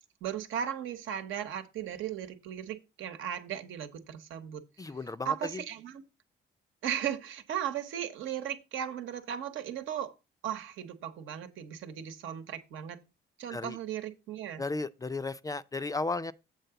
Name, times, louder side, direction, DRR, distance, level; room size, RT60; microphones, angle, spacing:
voice 1, 0.2-4.9 5.2-6.0 6.8-10.1 10.4-13.0 13.4-14.6, right 9 dB, 85° right, 1.0 m, -36 dB
voice 2, 4.8-5.6 13.5-13.8 14.6-16.3, left 3 dB, 15° left, 0.3 m, -34 dB
8.0 x 3.8 x 6.8 m
cardioid pair, 90°, 20 cm